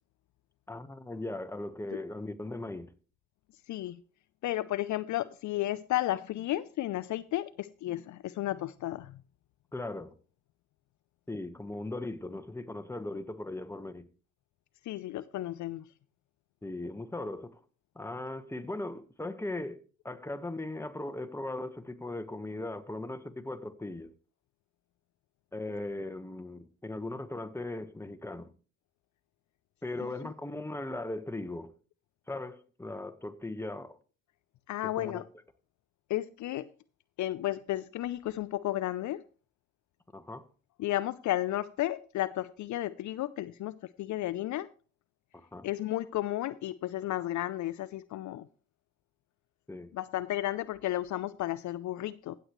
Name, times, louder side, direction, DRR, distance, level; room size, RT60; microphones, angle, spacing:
voice 1, 0.7-2.9 9.7-10.1 11.3-14.1 16.6-17.6 17.9-19.8 20.0-24.1 25.5-28.5 29.8-31.7 32.3-34.0 34.8-35.2 40.1-40.4 45.3-45.7 49.7-49.9, left 2 dB, 10° left, 1.2 m, -38 dB
voice 2, 3.7-4.0 4.4-9.2 14.9-15.8 34.7-35.2 36.1-36.7 37.2-39.2 40.8-44.7 45.6-48.4 49.9-52.4, left 14 dB, 60° left, 0.5 m, -33 dB
15.5 x 8.1 x 3.1 m
hypercardioid pair, 45°, 33 cm